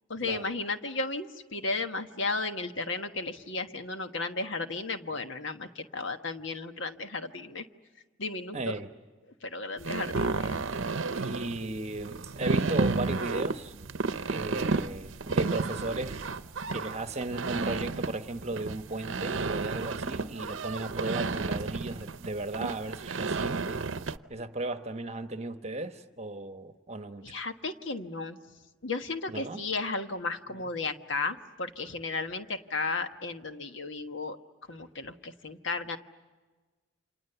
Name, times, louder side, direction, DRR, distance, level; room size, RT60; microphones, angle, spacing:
voice 1, 0.1-7.6 8.2-8.7 9.4-10.6 27.2-28.4 28.8-34.4 34.7-36.0, left 3 dB, 65° left, 1.4 m, -34 dB
voice 2, 8.5-8.9 11.1-13.7 14.2-16.3 16.7-23.8 24.3-27.3 29.3-29.6 30.5-30.6, right 2 dB, 30° right, 1.1 m, -36 dB
sound 1, 9.8-24.2, right 3 dB, 70° right, 0.8 m, -32 dB
29.5 x 27.0 x 6.9 m
head